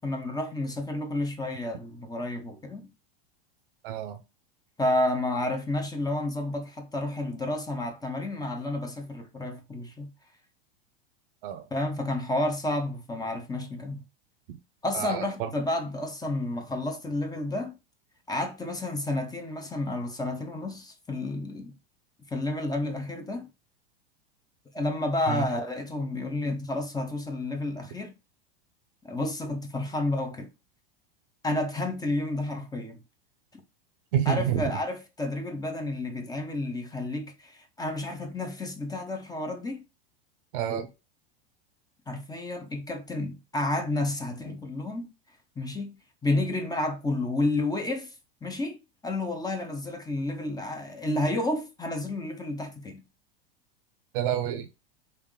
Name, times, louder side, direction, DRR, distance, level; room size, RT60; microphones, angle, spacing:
voice 1, 0.0-2.9 4.8-10.1 11.7-14.0 14.8-17.8 18.3-21.7 22.3-23.5 24.7-28.1 29.0-30.5 31.4-33.0 34.2-39.8 42.1-45.1 45.6-46.0 46.2-48.1 48.4-53.0, left 2 dB, 10° left, 0.9 m, -30 dB
voice 2, 3.8-4.2 11.4-11.7 14.9-15.5 25.3-25.5 34.1-34.8 40.5-40.9 54.1-54.7, right 10 dB, 60° right, 0.8 m, -28 dB
3.4 x 2.7 x 3.7 m
hypercardioid pair, 100°, 30 cm